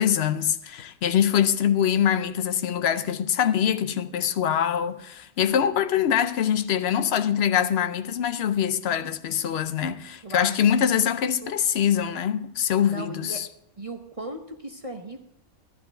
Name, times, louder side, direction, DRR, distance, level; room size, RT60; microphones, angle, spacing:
voice 1, 0.0-13.5, left 9 dB, 60° left, 0.8 m, -24 dB
voice 2, 10.2-11.0 11.4-11.6 12.9-13.5 13.8-15.2, right 1 dB, 30° right, 0.7 m, -37 dB
12.5 x 10.5 x 4.4 m
omnidirectional pair, 1.5 m